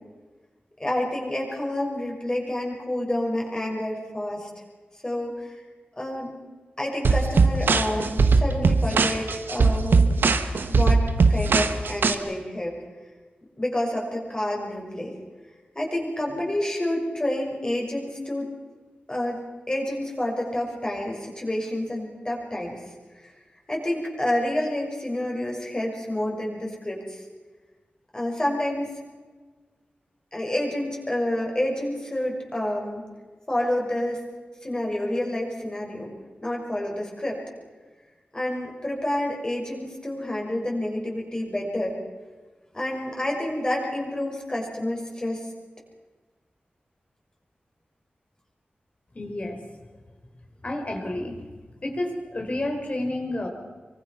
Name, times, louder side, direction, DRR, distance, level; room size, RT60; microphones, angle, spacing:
voice 1, 0.8-4.5 5.0-5.6 6.0-6.3 6.8-10.1 10.7-11.0 11.3-12.8 13.6-15.1 15.7-18.5 19.1-19.4 19.7-22.8 23.1-23.3 23.7-27.2 28.1-28.9 30.3-33.0 33.5-34.2 34.6-36.1 36.4-37.4 38.3-42.0 42.7-45.4, left 1 dB, 20° left, -1 dB, 6.4 m, -28 dB
sound 1, 7.0-12.1, right 4 dB, 85° right, 1.5 m, -20 dB
voice 2, 49.1-49.6 50.6-51.3 51.8-53.5, left 1 dB, 40° left, 3 dB, 4.7 m, -30 dB
25.0 x 24.0 x 6.0 m, 1.4 s
wide cardioid pair, 115°, 3 cm